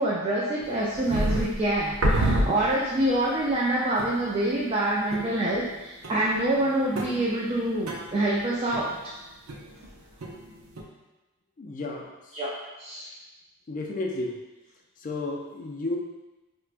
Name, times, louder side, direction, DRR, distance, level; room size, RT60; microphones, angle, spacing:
voice 1, 0.0-9.0 12.3-12.5 12.8-13.1, right 1 dB, 30° right, -5 dB, 0.4 m, -26 dB
sound 1, 0.6-3.1 3.5-3.6 4.0-4.5 5.1-5.8 6.0-9.9 10.2-10.8, right 1 dB, 85° right, 0.6 m, -29 dB
voice 2, 11.6-12.4 13.7-14.4 15.0-16.0, left 2 dB, 40° left, 0 dB, 0.4 m, -32 dB
4.5 x 2.2 x 2.4 m, 1.1 s
head